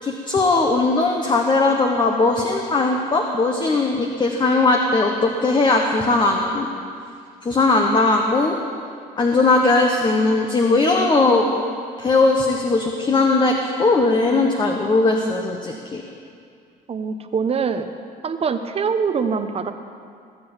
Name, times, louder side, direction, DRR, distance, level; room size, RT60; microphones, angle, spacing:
voice 1, 0.0-6.7 7.4-8.6 9.2-11.5 12.0-16.0, left 3 dB, 25° left, 2 dB, 1.2 m, -19 dB
voice 2, 16.9-17.9 18.2-19.7, right 6 dB, 35° right, 8 dB, 1.0 m, -23 dB
20.5 x 7.9 x 7.3 m, 2.3 s
cardioid pair, 110°, 17 cm